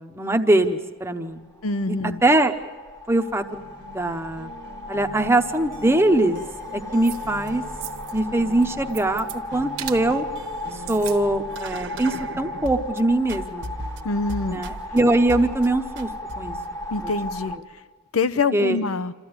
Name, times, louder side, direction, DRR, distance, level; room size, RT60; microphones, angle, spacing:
voice 1, 0.0-1.4 2.2-2.5 3.1-3.7 3.9-4.5 4.9-6.4 6.7-7.6 8.1-10.3 10.7-13.7 14.5-16.1 16.4-16.6 17.0-17.1 17.5-17.6 18.5-18.8, right 2 dB, 10° right, 6 dB, 0.9 m, -22 dB
voice 2, 1.6-2.2 14.0-14.6 16.9-17.5 18.1-19.1, left 4 dB, 75° left, 13 dB, 0.7 m, -25 dB
sound 1, 1.7-17.6, left 1 dB, 15° left, 1.1 m, -36 dB
sound 2, 3.3-13.0 13.3-15.0 15.3-15.7 16.0-16.7, right 1 dB, 55° right, 1.2 m, -39 dB
sound 3, 7.0-7.5 7.8-8.2 8.5-9.4 9.8-10.0 10.7-11.2 11.5-11.6, right 14 dB, 85° right, 1.0 m, -36 dB
27.5 x 14.0 x 9.6 m, 1.4 s
head